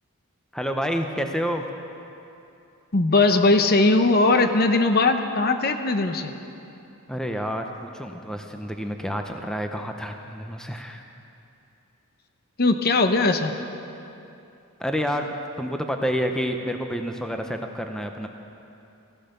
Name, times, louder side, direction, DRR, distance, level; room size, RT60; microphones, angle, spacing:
voice 1, 0.5-1.6 7.1-11.0 14.8-18.3, equal, 5° left, 4 dB, 0.7 m, -29 dB
voice 2, 2.9-6.3 12.6-13.5, left 3 dB, 45° left, 7 dB, 0.8 m, -19 dB
15.0 x 14.0 x 6.7 m, 2.8 s
head